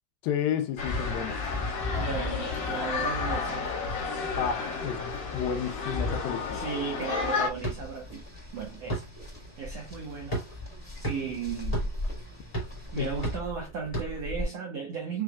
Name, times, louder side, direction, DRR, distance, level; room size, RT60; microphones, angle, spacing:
voice 1, 0.2-1.4 4.4-6.6 13.0-13.1, left 8 dB, 75° left, 2.3 m, -31 dB
sound 1, 0.8-7.5, left 4 dB, 50° left, 2.3 m, -32 dB
sound 2, 0.8-13.4, left 3 dB, 5° right, 2.0 m, -40 dB
voice 2, 1.9-3.8 6.5-8.2 8.5-9.1 9.6-10.4 11.0-11.9 12.9-15.2, right 6 dB, 80° right, 1.5 m, -35 dB
sound 3, 7.6-14.4, right 1 dB, 25° left, 0.7 m, -35 dB
6.3 x 3.4 x 2.3 m
omnidirectional pair, 4.4 m